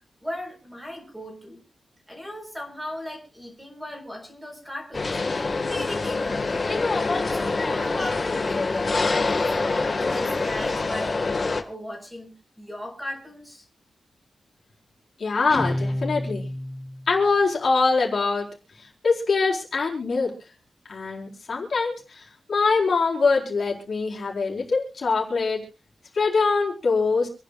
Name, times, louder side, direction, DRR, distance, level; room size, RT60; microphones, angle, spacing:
voice 1, 0.2-1.6 2.1-6.9 7.3-11.2 11.6-13.7, left 1 dB, 5° right, 2 dB, 4.4 m, -37 dB
sound 1, 4.9-11.6, left 3 dB, 35° left, 1.7 m, -25 dB
voice 2, 15.2-16.4 17.1-18.5 18.8-20.3 20.9-25.6 26.1-27.3, left 4 dB, 50° left, -3 dB, 4.3 m, -23 dB
Guitar, 15.5-17.2, left 1 dB, 15° left, 0.6 m, -29 dB
27.0 x 10.0 x 2.4 m, 0.33 s
wide cardioid pair, 150°, 0 cm